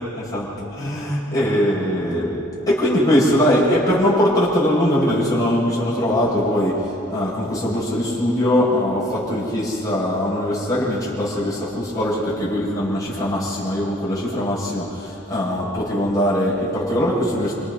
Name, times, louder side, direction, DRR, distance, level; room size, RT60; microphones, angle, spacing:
voice 1, 0.0-17.5, equal, 20° left, -9 dB, 7.0 m, -21 dB
28.5 x 28.5 x 4.3 m, 2.9 s
head